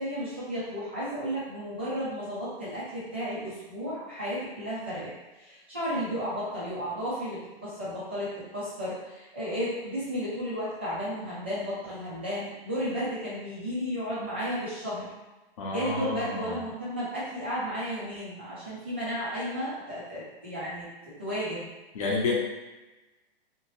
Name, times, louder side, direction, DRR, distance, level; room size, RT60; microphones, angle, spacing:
voice 1, 0.0-5.1 5.4-15.1 15.7-20.9 21.2-21.7, equal, 10° right, -11 dB, 0.3 m, -33 dB
voice 2, 15.6-16.6 21.9-22.3, left 3 dB, 35° left, -3 dB, 0.7 m, -29 dB
2.8 x 2.8 x 2.9 m, 1.1 s
hypercardioid pair, 170°, 30 cm